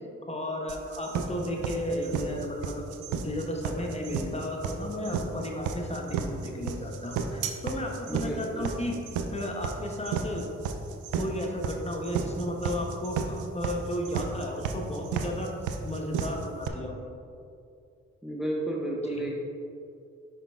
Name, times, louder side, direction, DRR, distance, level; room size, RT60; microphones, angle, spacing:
voice 1, 0.3-2.7 3.2-9.0 9.3-10.5 11.2-15.5 15.8-17.0 19.1-19.2, left 1 dB, 20° left, 0 dB, 1.1 m, -33 dB
sound 1, 0.7-16.7, right 7 dB, 85° right, 0.5 m, -32 dB
voice 2, 8.1-8.7 18.2-19.4, right 1 dB, ahead, -2 dB, 0.8 m, -32 dB
5.8 x 5.3 x 3.5 m, 2.5 s
supercardioid pair, 55°, 29 cm